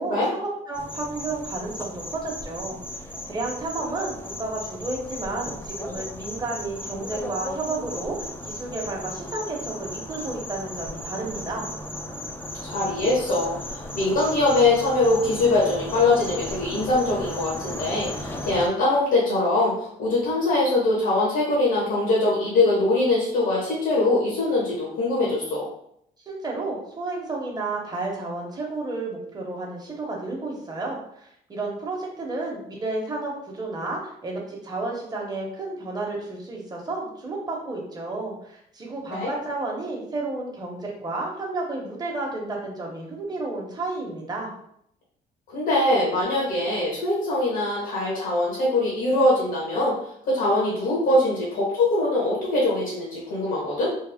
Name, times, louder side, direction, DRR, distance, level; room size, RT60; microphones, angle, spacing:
voice 1, 0.0-11.6 26.3-44.5, right 2 dB, 25° right, -1 dB, 1.0 m, -32 dB
sound 1, 0.7-18.7, left 1 dB, 15° left, 0.4 m, -36 dB
voice 2, 12.6-25.7 39.1-39.3 45.5-50.0 50.2-53.9, left 2 dB, 85° left, -6 dB, 1.3 m, -22 dB
3.4 x 2.0 x 3.5 m, 0.70 s
cardioid pair, 110°, 16 cm